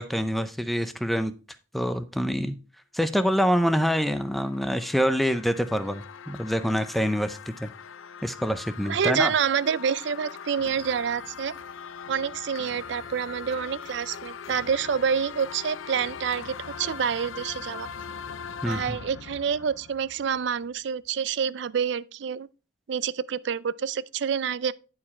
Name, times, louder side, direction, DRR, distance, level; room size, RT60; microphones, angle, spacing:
voice 1, 0.0-1.3 1.7-2.6 2.9-7.7 8.2-9.3 18.6-19.0, equal, ahead, 0.5 m, -26 dB
sound 1, 3.7-20.6, left 6 dB, 80° left, 0.5 m, -41 dB
voice 2, 8.8-11.5 12.1-17.9 18.6-22.5 22.9-24.7, right 7 dB, 60° right, 0.4 m, -27 dB
10.5 x 4.7 x 4.3 m
head